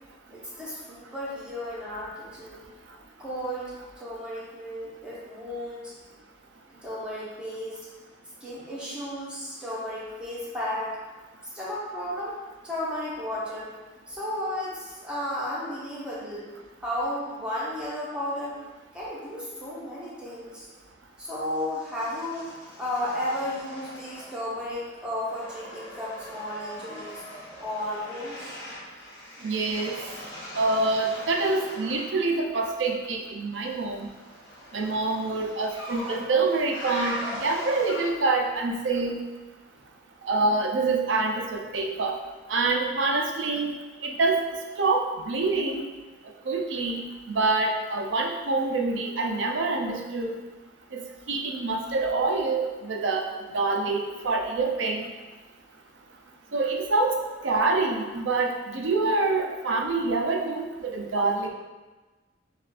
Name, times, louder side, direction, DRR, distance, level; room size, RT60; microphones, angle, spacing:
voice 1, 0.3-2.6 3.2-5.9 6.8-7.8 8.4-11.0 11.5-12.4 12.6-13.7 14.1-16.5 16.8-18.6 18.9-20.7 21.2-22.5 22.8-27.2 27.6-28.6, left 1 dB, 5° right, -9 dB, 1.3 m, -33 dB
sound 1, 21.5-24.6 24.9-32.2 33.7-38.4, equal, 60° left, 1.2 m, -40 dB
voice 2, 29.4-30.0 30.6-34.1 34.7-39.2 40.2-42.1 42.5-43.7 44.0-44.4 44.8-45.8 46.5-50.3 50.9-51.0 51.3-53.2 53.5-55.1 56.5-57.2 57.4-61.5, right 3 dB, 80° right, 2 dB, 0.5 m, -26 dB
6.6 x 2.5 x 2.4 m, 1.2 s
head